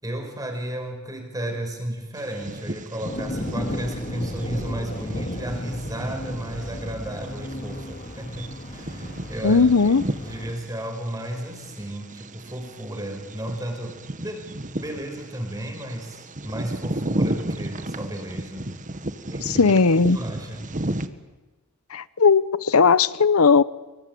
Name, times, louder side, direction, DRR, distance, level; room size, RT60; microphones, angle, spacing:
voice 1, 0.0-9.7 10.2-18.7 19.3-19.7 20.1-20.6, right 1 dB, 15° right, 5.6 m, -33 dB
Bird vocalization bird call bird song, 2.2-21.1, right 1 dB, 35° right, 1.4 m, -34 dB
sound 1, 3.1-10.5, left 1 dB, 35° left, 3.8 m, -34 dB
voice 2, 9.4-10.0 19.4-20.2 21.9-23.6, left 5 dB, 75° left, 0.8 m, -17 dB
26.0 x 24.0 x 9.3 m
head